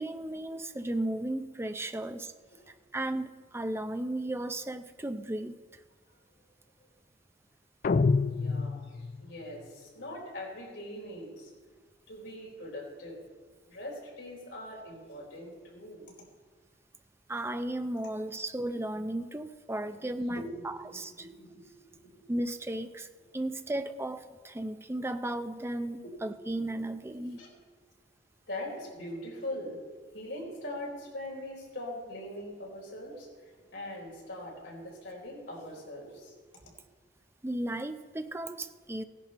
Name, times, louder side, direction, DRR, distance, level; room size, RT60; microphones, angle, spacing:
voice 1, 0.0-2.3 2.9-5.5 17.3-21.3 22.3-23.1 23.3-27.4 37.4-39.0, right 1 dB, 15° right, 9 dB, 0.5 m, -35 dB
sound 1, 7.8-9.3, left 4 dB, 45° left, 0.4 m, -27 dB
voice 2, 8.3-11.5 12.1-13.2 13.7-16.1 20.3-20.6 20.9-22.2 26.0-26.1 27.2-27.5 28.5-29.8 30.1-36.3 36.7-36.8, left 1 dB, 75° left, -1 dB, 4.3 m, -42 dB
16.5 x 11.0 x 4.2 m, 1.4 s
head